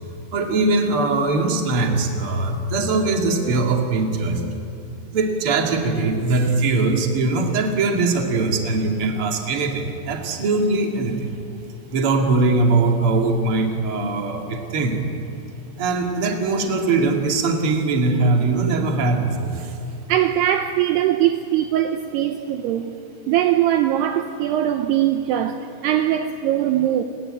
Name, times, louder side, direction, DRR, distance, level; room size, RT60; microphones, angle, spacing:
voice 1, 0.3-4.4 5.1-11.3 11.9-15.0 15.8-19.7, right 3 dB, 40° right, 2 dB, 2.2 m, -21 dB
voice 2, 20.1-23.0 23.3-27.0, right 11 dB, 85° right, 7 dB, 2.4 m, -21 dB
29.0 x 21.0 x 8.9 m, 2.7 s
omnidirectional pair, 5.7 m